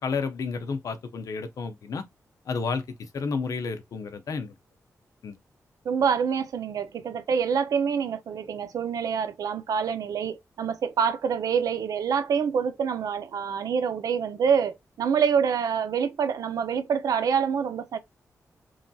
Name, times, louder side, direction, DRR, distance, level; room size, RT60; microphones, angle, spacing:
voice 1, 0.0-2.0 2.5-4.5 5.2-5.4, left 4 dB, 75° left, 0.5 m, -31 dB
voice 2, 5.8-18.0, right 7 dB, 85° right, 0.4 m, -26 dB
3.1 x 2.2 x 2.6 m
wide cardioid pair, 100°, 6 cm